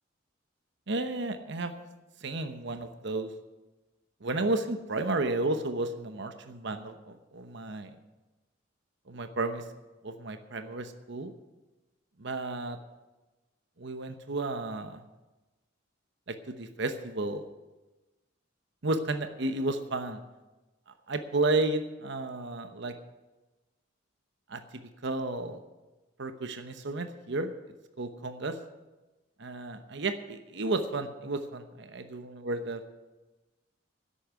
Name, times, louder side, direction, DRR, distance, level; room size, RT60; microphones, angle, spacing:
voice 1, 0.9-1.7 2.2-3.3 4.2-7.9 9.1-9.6 10.0-11.3 12.2-12.8 13.8-15.0 16.3-17.4 18.8-20.2 21.1-22.9 24.5-24.6 25.0-25.6 26.2-27.5 28.0-28.5 29.4-32.8, right 2 dB, 60° right, 8 dB, 0.9 m, -32 dB
11.0 x 8.5 x 9.4 m, 1.1 s
head